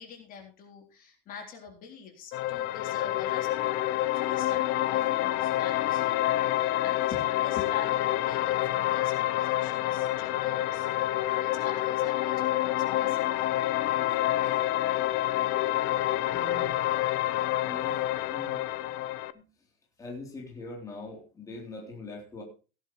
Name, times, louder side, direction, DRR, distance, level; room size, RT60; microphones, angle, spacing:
voice 1, 0.0-13.3 14.4-14.6, left 6 dB, 45° left, 3 dB, 3.7 m, -46 dB
sound 1, 2.3-19.3, left 14 dB, 70° left, 0.9 m, -28 dB
voice 2, 16.3-16.7 17.6-18.0 18.3-18.6 19.3-19.4 20.0-22.4, left 2 dB, 15° left, -1 dB, 3.5 m, -42 dB
17.0 x 10.5 x 3.2 m, 0.33 s
cardioid pair, 170°, 21 cm